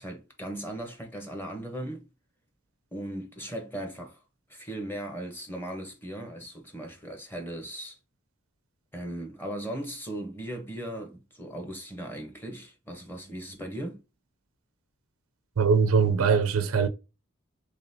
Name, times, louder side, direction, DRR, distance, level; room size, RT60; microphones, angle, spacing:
voice 1, 0.0-2.1 2.9-4.2 4.5-8.0 8.9-14.0, right 1 dB, 10° left, 0.9 m, -38 dB
voice 2, 15.6-16.9, right 5 dB, 85° right, 0.6 m, -22 dB
3.8 x 3.5 x 2.7 m
head